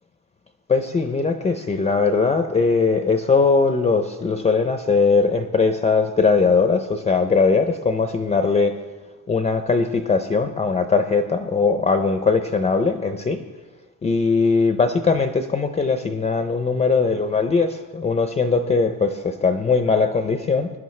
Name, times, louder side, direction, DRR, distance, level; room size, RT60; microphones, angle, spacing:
voice 1, 0.7-8.8 9.3-13.4 14.0-20.7, left 4 dB, 20° left, 8 dB, 0.4 m, -20 dB
21.5 x 11.0 x 3.2 m, 1.3 s
cardioid pair, 165°, 37 cm